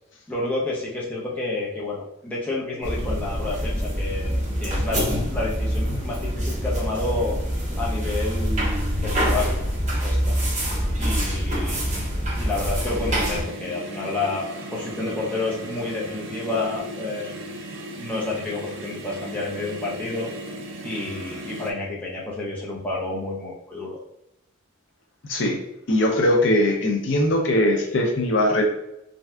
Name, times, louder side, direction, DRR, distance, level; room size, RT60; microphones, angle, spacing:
voice 1, 0.3-7.4 7.8-9.6 10.0-10.4 11.0-12.0 12.3-14.5 14.7-17.4 18.0-20.3 20.8-24.0, left 2 dB, 5° left, -6 dB, 0.5 m, -30 dB
sound 1, 2.8-13.4, equal, 35° right, 0.9 m, -25 dB
sound 2, 12.9-21.7, right 1 dB, 60° right, 0.4 m, -36 dB
voice 2, 25.9-28.6, left 1 dB, 55° left, 1 dB, 0.5 m, -20 dB
3.3 x 2.6 x 2.2 m, 0.83 s
head